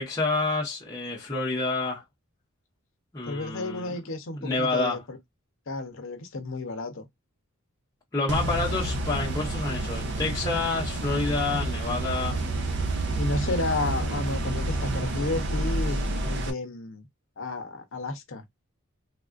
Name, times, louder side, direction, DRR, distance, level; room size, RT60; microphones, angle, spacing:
voice 1, 0.0-2.0 3.1-3.9 4.4-5.0 8.1-12.4 13.4-13.6, left 3 dB, 15° left, 0.8 m, -28 dB
voice 2, 3.3-5.2 5.7-7.1 13.2-17.0 17.4-18.4, left 2 dB, 60° left, 0.8 m, -32 dB
sound 1, 8.3-16.5, right 1 dB, 50° right, 0.6 m, -29 dB
3.5 x 2.5 x 2.4 m
head